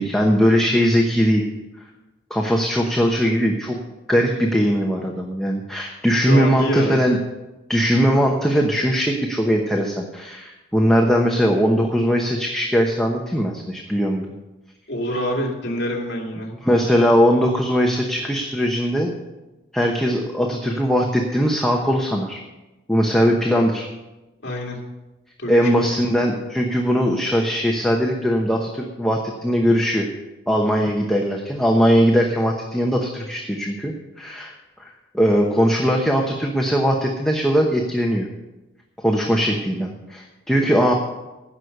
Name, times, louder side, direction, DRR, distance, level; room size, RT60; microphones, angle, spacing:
voice 1, 0.0-1.4 2.3-3.8 4.1-7.2 7.7-14.3 16.6-19.1 19.7-22.4 22.9-23.9 25.5-30.1 30.5-34.5 34.8-34.9 35.1-38.3 39.0-40.9, equal, 5° left, 0 dB, 1.0 m, -20 dB
voice 2, 6.3-7.0 14.9-16.5 24.4-24.8 25.4-25.9, equal, 60° left, -1 dB, 2.5 m, -26 dB
16.0 x 6.4 x 6.7 m, 1.1 s
head